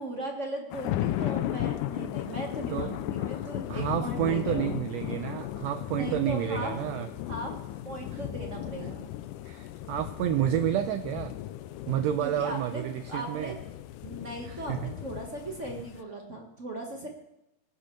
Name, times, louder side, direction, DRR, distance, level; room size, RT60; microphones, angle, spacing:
voice 1, 0.0-4.8 5.9-6.7 7.3-7.6 7.8-9.0 12.2-12.8 13.1-13.6 14.0-17.1, right 1 dB, 45° right, 1 dB, 0.9 m, -38 dB
sound 1, 0.7-16.0, left 13 dB, 85° left, 2.1 m, -35 dB
voice 2, 3.2-7.1 8.1-8.2 9.4-11.3 11.9-13.6 14.4-14.9, right 11 dB, 90° right, 9 dB, 1.5 m, -30 dB
19.0 x 10.5 x 3.2 m, 0.86 s
omnidirectional pair, 3.6 m